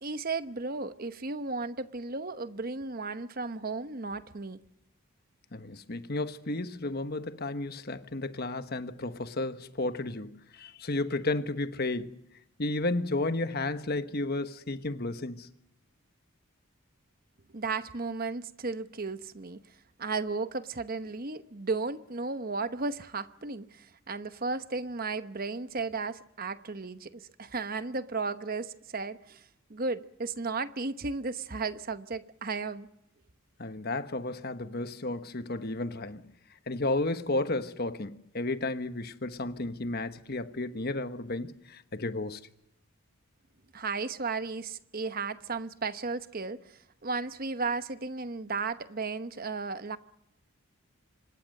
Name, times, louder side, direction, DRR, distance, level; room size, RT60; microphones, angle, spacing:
voice 1, 0.0-4.6 17.5-19.6 20.0-29.4 29.7-32.9 43.7-50.0, right 4 dB, 40° right, 1.0 m, -34 dB
voice 2, 5.5-12.2 12.6-15.5 33.6-36.2 36.7-42.4, left 2 dB, 45° left, 1.2 m, -33 dB
26.0 x 21.5 x 6.6 m
head